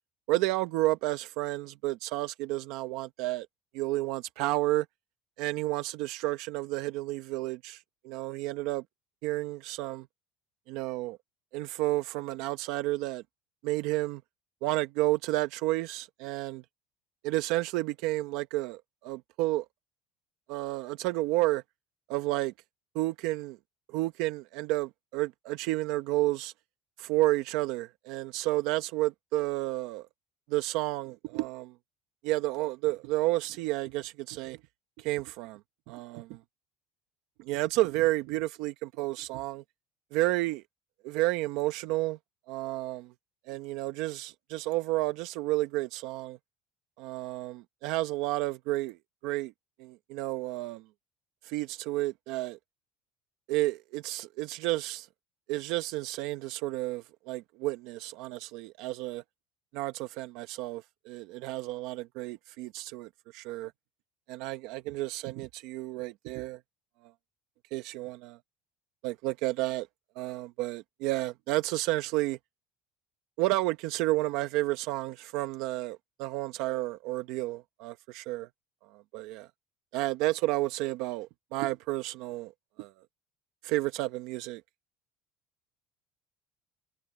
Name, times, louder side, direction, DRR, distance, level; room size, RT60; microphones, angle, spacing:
voice 1, 0.3-3.5 3.7-4.8 5.4-8.8 9.2-10.1 10.7-11.2 11.5-13.2 13.6-14.2 14.6-16.6 17.2-19.6 20.5-21.6 22.1-22.5 22.9-23.6 23.9-26.5 27.0-30.1 30.5-31.7 32.2-34.6 35.0-35.6 35.9-36.4 37.5-39.6 40.1-40.6 41.0-42.2 42.5-43.1 43.5-46.4 47.0-49.0 49.2-49.5 49.8-50.8 51.4-52.6 53.5-55.1 55.5-59.2 59.7-63.7 64.3-66.6 67.7-68.4 69.0-69.9 70.2-72.4 73.4-78.5 78.9-79.5 79.9-82.5 82.8-82.9 83.6-84.6, right 18 dB, 70° right, 1.0 m, -31 dB
cardioid pair, 155°, 0 cm